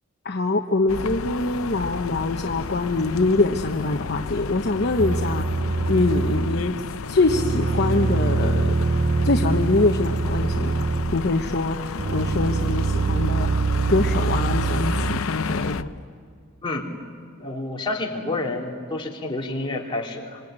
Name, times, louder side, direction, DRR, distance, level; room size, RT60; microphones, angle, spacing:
voice 1, 0.2-5.4 5.9-6.7 7.1-8.7 9.2-10.9 11.1-13.5 13.9-15.9, left 2 dB, 50° left, 3 dB, 1.0 m, -24 dB
sound 1, 0.9-15.8, left 5 dB, 70° left, 0.6 m, -32 dB
sound 2, 5.0-6.8 7.3-11.4 12.0-15.2, right 3 dB, 50° right, 0.7 m, -24 dB
voice 2, 17.4-20.4, left 2 dB, 25° left, -2 dB, 3.1 m, -29 dB
26.0 x 24.5 x 8.9 m, 2.2 s
head